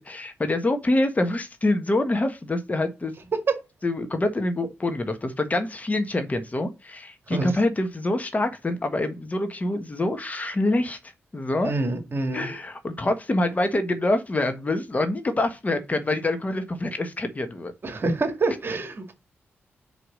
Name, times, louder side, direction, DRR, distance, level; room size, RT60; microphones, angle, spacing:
voice 1, 0.1-3.1 3.8-11.0 11.3-11.7 12.3-17.7, left 2 dB, 30° left, 1.4 m, -25 dB
voice 2, 11.6-12.5 17.8-19.1, right 3 dB, 50° right, 2.0 m, -26 dB
4.9 x 4.8 x 6.2 m
cardioid pair, 60°, 5 cm